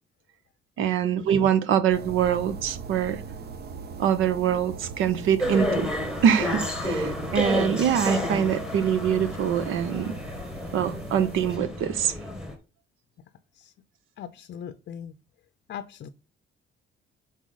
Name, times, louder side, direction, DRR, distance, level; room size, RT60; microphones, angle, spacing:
voice 1, 0.8-3.2 4.0-5.9 6.2-10.2 10.7-12.1, right 8 dB, 85° right, 0.8 m, -24 dB
sound 1, 1.9-11.6, right 5 dB, 55° right, 0.8 m, -41 dB
sound 2, 5.4-12.5, left 1 dB, 5° right, 1.4 m, -30 dB
voice 2, 14.2-15.1 15.7-16.1, left 8 dB, 55° left, 0.5 m, -39 dB
6.3 x 4.1 x 3.9 m
cardioid pair, 120°, 20 cm